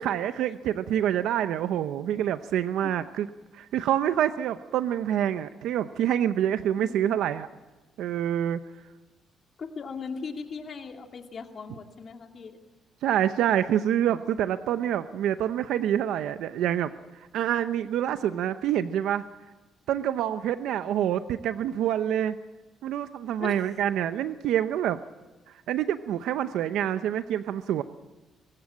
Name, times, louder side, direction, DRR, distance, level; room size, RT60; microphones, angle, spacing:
voice 1, 0.0-3.3 3.5-7.5 8.0-8.6 13.0-16.9 17.3-19.2 19.9-22.4 22.8-25.0 25.7-27.8, right 10 dB, 85° right, 11 dB, 0.7 m, -26 dB
voice 2, 6.8-7.2 9.6-12.6 23.4-23.7, left 5 dB, 45° left, 4 dB, 2.6 m, -39 dB
23.5 x 16.0 x 8.8 m, 1.2 s
cardioid pair, 90°, 0 cm